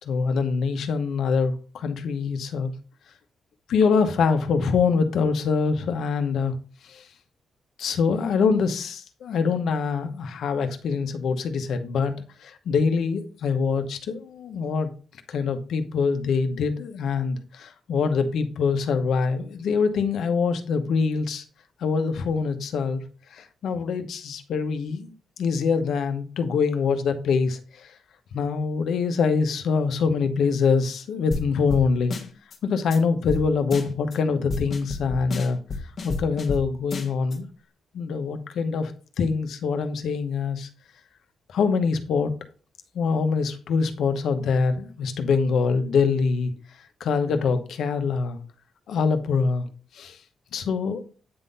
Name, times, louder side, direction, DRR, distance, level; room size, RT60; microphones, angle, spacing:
voice 1, 0.0-2.7 3.7-6.6 6.8-7.1 7.8-12.1 12.4-14.9 15.3-21.4 21.8-23.0 23.3-25.1 25.4-27.9 28.3-32.1 32.6-35.6 36.0-37.5 37.9-38.9 39.2-40.7 41.5-42.3 42.9-46.5 47.0-48.4 48.9-49.7 49.9-50.2 50.5-51.0, left 5 dB, 75° left, 0.9 m, -24 dB
sound 1, 31.3-31.4 31.7-31.8 32.1-32.6 32.9-33.0 33.3-33.4 33.7-34.2 34.5-36.6 36.9-37.4, left 4 dB, 45° left, 1.2 m, -30 dB
8.8 x 3.8 x 4.0 m
cardioid pair, 140°, 0 cm